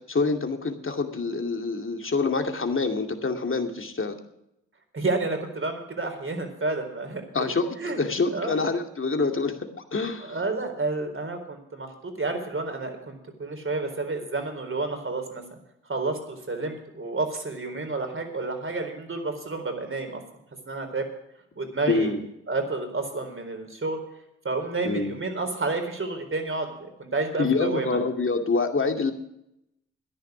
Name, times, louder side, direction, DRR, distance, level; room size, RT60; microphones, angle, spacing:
voice 1, 0.1-4.2 7.3-9.5 9.9-10.4 21.9-22.2 24.8-25.2 27.4-29.1, left 3 dB, 40° left, 5 dB, 2.4 m, -26 dB
voice 2, 4.9-7.3 7.8-8.0 8.3-8.6 10.2-15.4 15.9-20.2 20.7-21.1 21.6-22.2 22.5-24.0 24.4-28.0, right 3 dB, 40° right, 5 dB, 4.1 m, -30 dB
13.5 x 10.5 x 6.0 m, 0.81 s
supercardioid pair, 40°, 31 cm